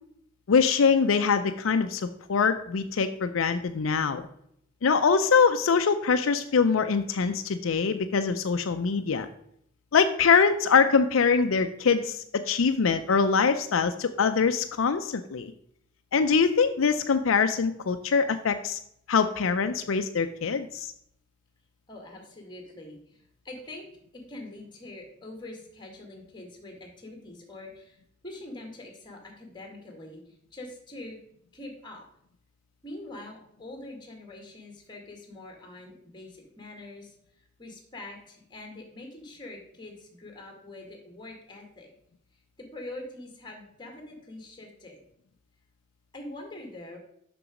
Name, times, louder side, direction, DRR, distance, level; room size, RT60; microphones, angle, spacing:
voice 1, 0.5-4.3 4.8-9.3 9.9-15.5 16.1-18.8 19.1-20.9, left 5 dB, 80° left, 9 dB, 0.5 m, -23 dB
voice 2, 21.9-23.9 24.1-28.0 28.2-31.2 31.5-32.1 32.8-41.9 42.6-45.0 46.1-47.0, left 2 dB, 25° left, 2 dB, 1.9 m, -44 dB
6.9 x 6.1 x 4.9 m, 0.71 s
head